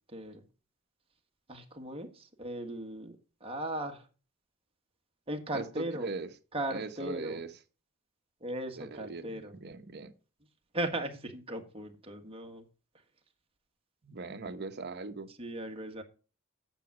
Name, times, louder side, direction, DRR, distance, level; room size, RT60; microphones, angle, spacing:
voice 1, 0.1-0.4 1.5-4.1 5.3-6.1 6.5-7.4 8.4-9.5 10.7-12.7 15.4-16.0, right 1 dB, 30° right, 1.5 m, -37 dB
voice 2, 5.5-6.3 6.7-7.5 8.8-10.1 14.0-15.3, right 3 dB, 50° right, 0.9 m, -40 dB
9.1 x 7.2 x 4.8 m
head